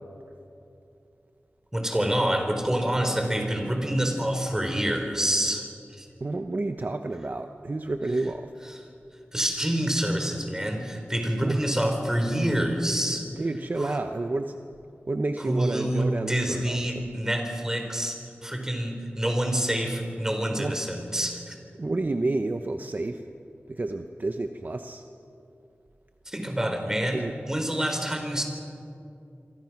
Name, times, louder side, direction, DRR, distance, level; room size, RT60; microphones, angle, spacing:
voice 1, 1.7-5.7 5.9-6.1 9.3-13.3 13.8-14.0 15.5-21.6 26.3-28.4, right 1 dB, 10° right, 4 dB, 3.8 m, -27 dB
voice 2, 6.2-8.5 11.4-11.6 13.4-14.6 15.1-17.1 20.6-20.8 21.8-23.2 23.7-25.0 27.1-27.3, right 2 dB, 45° right, 6 dB, 0.9 m, -30 dB
27.5 x 23.5 x 6.0 m, 2.6 s
wide cardioid pair, 85°, 4 cm